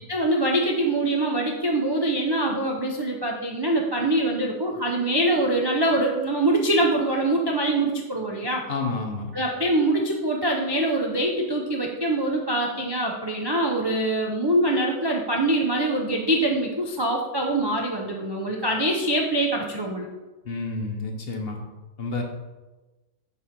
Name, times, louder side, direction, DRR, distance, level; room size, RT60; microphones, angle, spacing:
voice 1, 0.1-8.6 9.3-20.1, right 1 dB, 40° right, 0 dB, 0.3 m, -24 dB
voice 2, 8.7-9.3 20.4-21.6 22.0-22.2, left 3 dB, 45° left, 2 dB, 0.9 m, -29 dB
7.7 x 3.3 x 5.8 m, 1.1 s
omnidirectional pair, 1.6 m